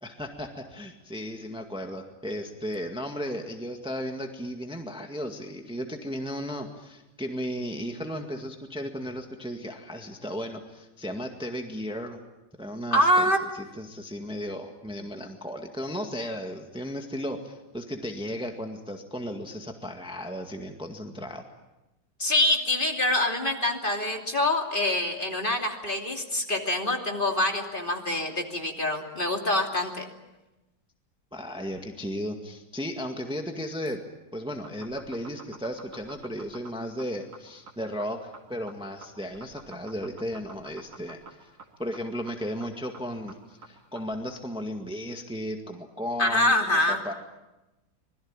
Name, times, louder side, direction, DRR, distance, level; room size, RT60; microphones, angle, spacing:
voice 1, 0.0-12.2 12.6-21.4 31.3-34.0 34.3-41.5 41.8-46.5 46.9-47.1, equal, 5° right, 4 dB, 1.8 m, -35 dB
voice 2, 12.9-13.4 22.2-30.1 46.2-47.0, left 1 dB, 30° left, 3 dB, 2.9 m, -25 dB
sound 1, 34.5-44.1, right 4 dB, 70° right, 3.3 m, -47 dB
26.0 x 21.0 x 8.9 m, 1.0 s
omnidirectional pair, 1.7 m